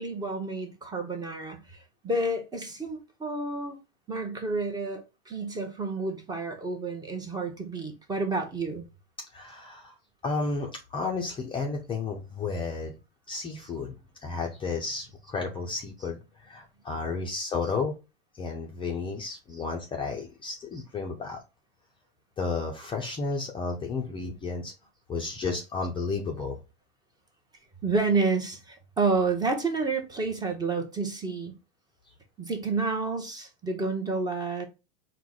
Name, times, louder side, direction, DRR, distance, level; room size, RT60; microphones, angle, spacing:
voice 1, 0.0-3.8 4.1-8.8 27.8-31.5 32.4-34.7, right 3 dB, 15° right, 0.8 m, -30 dB
voice 2, 9.3-9.9 10.2-12.9 13.3-13.9 14.2-17.9 18.3-21.4 22.4-24.7 25.1-26.6, left 4 dB, 15° left, 0.5 m, -32 dB
4.5 x 2.2 x 3.8 m
supercardioid pair, 130°, 30 cm